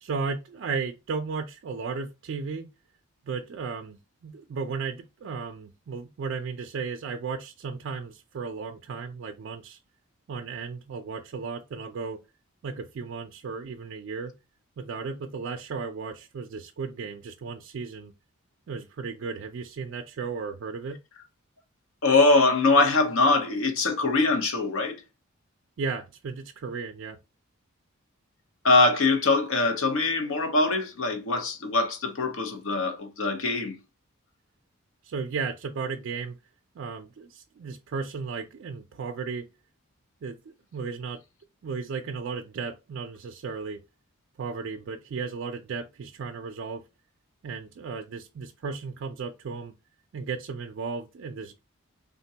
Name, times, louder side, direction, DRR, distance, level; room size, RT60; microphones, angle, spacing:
voice 1, 0.0-2.7 3.3-9.8 10.3-12.2 12.6-14.3 14.8-18.1 18.7-21.0 25.8-27.2 35.0-36.4 36.8-39.5 40.2-41.2 41.6-43.8 44.4-46.8 47.4-49.7 50.1-51.6, right 5 dB, 60° right, 0.3 m, -35 dB
voice 2, 22.0-25.0 28.6-33.8, left 3 dB, 65° left, 0.7 m, -23 dB
3.5 x 2.2 x 2.7 m
head